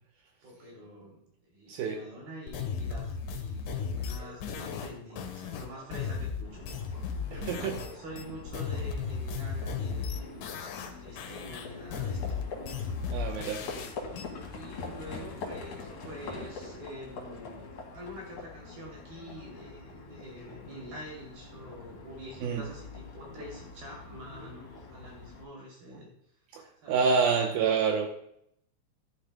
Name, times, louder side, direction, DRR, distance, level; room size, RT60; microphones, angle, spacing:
voice 1, 0.4-7.7 7.9-12.4 12.6-13.5 14.5-17.6 17.9-26.1 26.8-27.0, equal, 55° right, -3 dB, 4.5 m, -46 dB
voice 2, 1.7-2.0 7.5-7.8 13.1-13.7 22.4-22.7 26.5-28.1, right 5 dB, 85° right, 2 dB, 2.1 m, -27 dB
sound 1, 2.5-7.9 8.2-10.9 11.2-14.2, left 6 dB, 85° left, 1.9 m, -35 dB
sound 2, 4.0-4.4 4.6-5.2 5.5-6.2 6.5-7.0 7.4-8.0 8.3-8.5 8.7-8.9 9.2-9.3, left 1 dB, 20° right, 1.9 m, -52 dB
Livestock farm animals working animals, 6.4-25.4, left 3 dB, 55° left, 2.4 m, -44 dB
13.5 x 12.0 x 2.2 m, 0.73 s
omnidirectional pair, 5.4 m